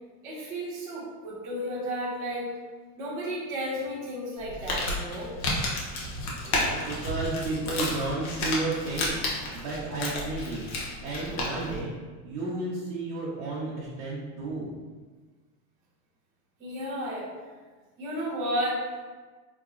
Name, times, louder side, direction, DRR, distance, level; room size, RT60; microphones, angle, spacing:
voice 1, 0.2-2.5 3.0-5.3 16.6-17.3 18.0-18.8, equal, 5° right, -12 dB, 0.4 m, -33 dB
Crumpling crinkling, 4.4-11.8, left 2 dB, 60° left, 1.0 m, -32 dB
voice 2, 6.4-10.6 11.0-11.9 12.2-14.7, right 2 dB, 45° right, -7 dB, 0.8 m, -32 dB
3.9 x 3.0 x 2.4 m, 1.4 s
supercardioid pair, 160°, 49 cm